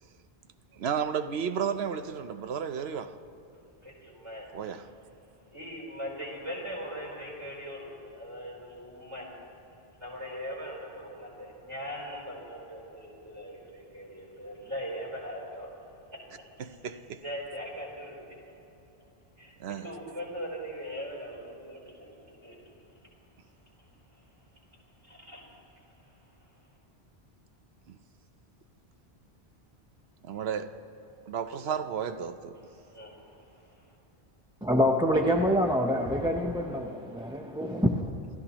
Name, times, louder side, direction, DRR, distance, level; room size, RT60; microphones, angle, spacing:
voice 1, 0.7-3.1 4.5-4.8 16.6-17.2 19.6-19.9 27.9-28.0 30.2-30.7 31.3-32.6, right 7 dB, 80° right, 1.0 m, -33 dB
voice 2, 3.8-4.5 5.5-9.4 10.0-15.7 16.1-16.2 17.2-18.4 19.4-23.0 23.8-24.7 25.0-26.8 32.5-34.0, equal, 30° right, 4.0 m, -41 dB
voice 3, 34.6-38.3, equal, 5° right, 0.5 m, -26 dB
28.0 x 13.5 x 3.0 m
omnidirectional pair, 1.0 m